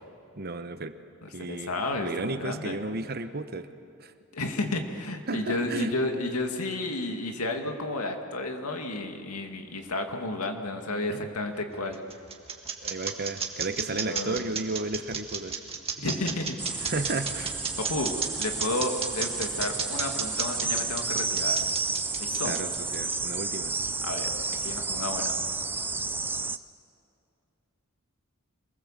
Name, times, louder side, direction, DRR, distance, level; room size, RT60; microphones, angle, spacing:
voice 1, 0.4-0.9 1.3-1.7 2.0-3.7 4.0-4.1 5.3-5.9 11.1-11.3 12.8-15.6 16.0-16.1 16.8-17.6 22.4-23.8, right 3 dB, 45° right, 10 dB, 1.0 m, -33 dB
voice 2, 1.4-2.8 4.3-12.0 14.0-14.5 16.0-16.9 17.9-21.6 22.2-22.5 24.0-24.3 24.6-25.3, left 2 dB, 85° left, 4 dB, 2.2 m, -32 dB
sound 1, 11.5-23.5, right 6 dB, 25° right, 1.8 m, -32 dB
sound 2, 16.6-26.6, right 4 dB, 10° right, 0.5 m, -31 dB
26.5 x 20.0 x 7.5 m, 2.5 s
head